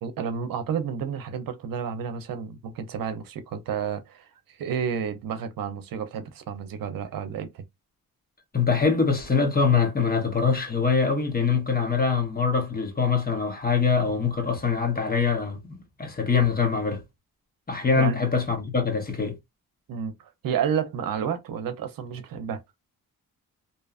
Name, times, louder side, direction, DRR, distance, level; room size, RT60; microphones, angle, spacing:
voice 1, 0.0-7.6 17.9-18.2 19.9-20.2 20.4-22.6, right 7 dB, 75° right, 0.6 m, -30 dB
voice 2, 8.5-17.0 17.7-19.4, left 5 dB, 25° left, 1.0 m, -24 dB
2.7 x 2.3 x 2.4 m
cardioid pair, 70°, 35 cm